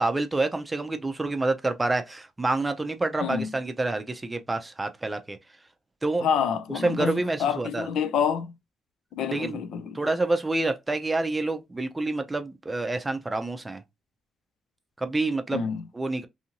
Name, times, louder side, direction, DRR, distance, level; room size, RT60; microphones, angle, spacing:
voice 1, 0.0-5.4 6.0-6.3 6.8-7.9 9.3-9.6 9.9-13.8 15.0-15.7 15.9-16.3, right 2 dB, 20° right, 0.5 m, -27 dB
voice 2, 6.2-8.5 9.1-9.9 15.5-15.8, left 7 dB, 80° left, 0.4 m, -27 dB
2.7 x 2.5 x 2.8 m
cardioid pair, 90°, 0 cm